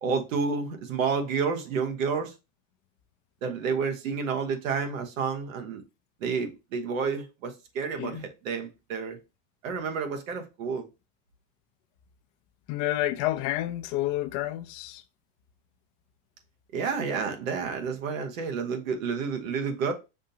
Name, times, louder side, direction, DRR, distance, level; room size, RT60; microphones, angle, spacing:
voice 1, 0.0-2.3 3.4-5.8 6.2-9.2 9.6-10.9 16.7-19.9, right 5 dB, 85° right, 1.2 m, -30 dB
voice 2, 12.7-15.0, left 14 dB, 50° left, 0.6 m, -29 dB
6.0 x 2.8 x 2.7 m
supercardioid pair, 120°, 39 cm